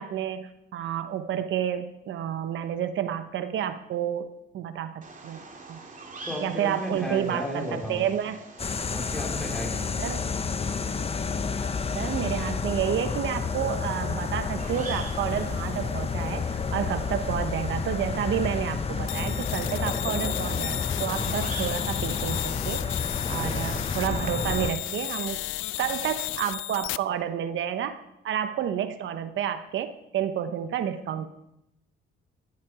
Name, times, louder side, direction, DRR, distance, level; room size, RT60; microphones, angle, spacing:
voice 1, 0.0-4.3 4.5-5.4 5.7-5.8 6.4-8.4 10.0-10.2 11.9-22.8 23.3-25.4 25.8-27.9 28.2-31.3, right 9 dB, 75° right, 10 dB, 0.9 m, -30 dB
Bird vocalization bird call bird song, 5.0-25.0, right 3 dB, 40° right, 2.8 m, -46 dB
voice 2, 6.2-8.1 8.9-9.9 23.2-23.9 30.4-30.5, left 1 dB, ahead, -1 dB, 4.2 m, -34 dB
sound 1, 8.6-24.7, left 5 dB, 30° left, 0.9 m, -30 dB
sound 2, 19.1-27.0, left 17 dB, 85° left, 0.4 m, -33 dB
15.0 x 11.5 x 4.9 m, 0.86 s
cardioid pair, 90°, 20 cm